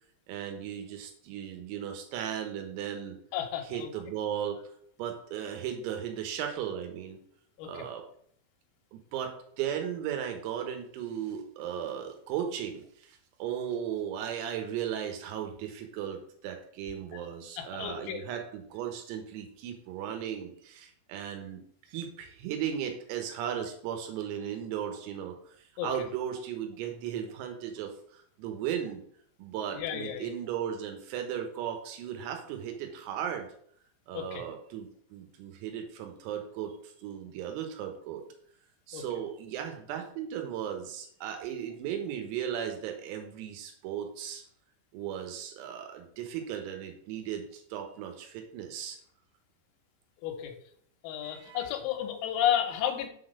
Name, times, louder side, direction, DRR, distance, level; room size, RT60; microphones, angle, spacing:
voice 1, 0.3-3.2 3.7-4.6 5.0-7.2 7.6-8.0 8.9-21.6 21.9-25.4 25.8-29.0 29.4-33.5 34.1-38.2 38.9-44.4 44.9-49.0 51.2-51.7, right 9 dB, 90° right, 4 dB, 3.9 m, -36 dB
voice 2, 3.3-3.9 7.6-7.9 17.6-18.2 25.8-25.9 29.7-30.3 34.1-34.4 38.9-39.0 50.2-50.5 51.0-53.1, left 10 dB, 85° left, 4 dB, 3.8 m, -32 dB
8.2 x 4.1 x 6.5 m, 0.62 s
omnidirectional pair, 6.0 m